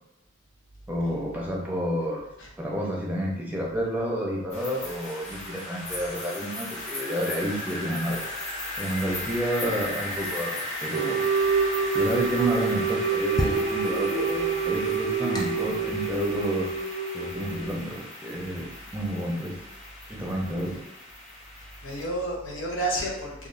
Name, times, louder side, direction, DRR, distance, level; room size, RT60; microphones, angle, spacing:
voice 1, 0.9-2.2 2.6-8.3 8.8-11.2 11.9-16.7 17.1-19.5 20.1-20.8, equal, 10° right, -3 dB, 0.7 m, -30 dB
sound 1, 4.5-22.1, left 1 dB, 40° left, 0.9 m, -37 dB
sound 2, 10.9-17.7, right 5 dB, 70° right, 0.4 m, -27 dB
sound 3, 11.4-16.7, left 2 dB, 20° left, 0.3 m, -35 dB
voice 2, 21.6-23.5, right 1 dB, 80° left, -2 dB, 0.8 m, -31 dB
3.5 x 2.4 x 2.5 m, 0.93 s
head